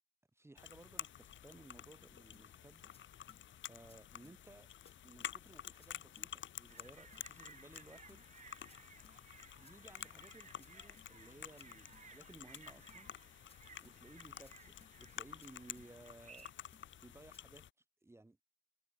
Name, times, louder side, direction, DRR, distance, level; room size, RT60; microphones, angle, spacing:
voice 1, 0.3-2.9 3.7-4.7 5.0-8.3 9.5-13.1 13.8-16.5 17.0-17.6 18.0-18.4, right 2 dB, 15° right, 6.4 m, -59 dB
sound 1, 0.6-17.7, left 10 dB, 80° left, 1.4 m, -51 dB
sound 2, 2.3-2.5 2.9-3.0 3.3-3.4 3.9-4.0 4.2-4.4 4.8-4.9 5.2-5.3 5.8-5.9 6.2-6.3 6.8-6.9 7.1-7.3 7.7-7.8 8.1-8.2 8.7-8.8 9.0-9.2 9.6-9.7 10.0-10.1 10.6-10.7 11.0-11.1 11.6-11.7 11.9-12.1 12.5-12.6 12.9-13.0 13.5-13.6 13.8-14.0 14.4-14.5 14.8-14.9 15.4-15.5 15.8-15.9 16.4-16.5 16.7-16.9 17.3-17.4, left 4 dB, 30° left, 2.5 m, -65 dB
sound 3, 6.7-16.5, right 5 dB, 40° right, 3.6 m, -61 dB
wide cardioid pair, 155°, 19 cm